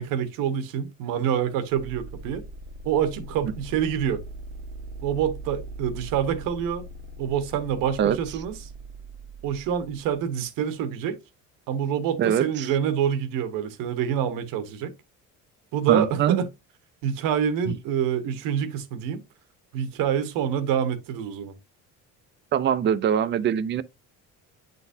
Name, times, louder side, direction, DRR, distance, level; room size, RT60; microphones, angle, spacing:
voice 1, 0.0-2.4 2.8-4.2 5.0-6.8 7.2-8.6 9.4-11.2 11.7-14.9 15.7-16.5 17.0-19.2 19.7-21.5, right 8 dB, 90° right, 1.2 m, -26 dB
sound 1, 1.7-10.4, right 2 dB, 70° right, 0.9 m, -41 dB
voice 2, 12.2-12.7 15.9-16.4 17.7-17.8 22.5-23.8, right 9 dB, 35° right, 0.5 m, -23 dB
9.1 x 4.0 x 2.7 m
cardioid pair, 130°, 32 cm